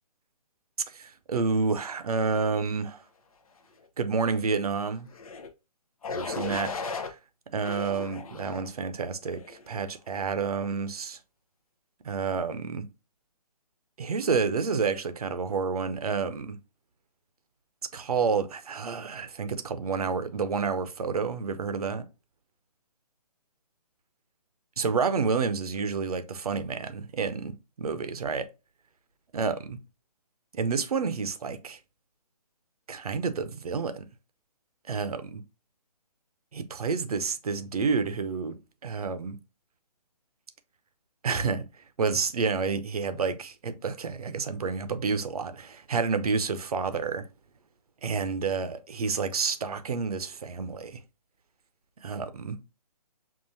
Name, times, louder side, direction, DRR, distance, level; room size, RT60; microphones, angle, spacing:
voice 1, 0.9-3.0 4.0-5.1 6.1-7.2 7.5-11.2 12.0-12.9 14.0-16.6 17.9-22.0 24.8-28.5 29.3-29.8 30.5-31.8 32.9-34.1 34.9-35.4 36.5-38.6 38.8-39.4 41.2-41.6 42.0-47.2 48.0-51.0 52.0-52.6, right 5 dB, 65° right, 0.6 m, -29 dB
sound 1, 5.1-5.5 6.0-7.1 7.6-8.7 9.3-9.6, left 4 dB, 60° left, 0.7 m, -36 dB
5.5 x 2.5 x 2.6 m
figure-of-eight pair, 145°, 21 cm